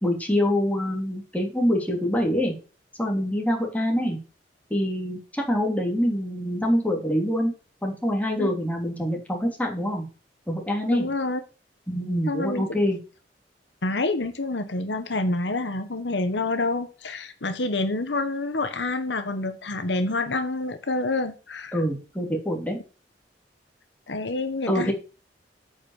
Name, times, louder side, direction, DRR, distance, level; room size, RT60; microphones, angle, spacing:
voice 1, 0.0-2.5 3.0-4.2 4.7-7.5 7.8-10.0 10.5-11.1 11.9-13.0 21.7-22.8 24.7-24.9, equal, 10° left, 3.2 m, -25 dB
voice 2, 10.9-11.4 12.3-12.8 13.8-21.8 24.1-24.9, left 2 dB, 85° left, 1.3 m, -27 dB
9.2 x 6.1 x 7.3 m
head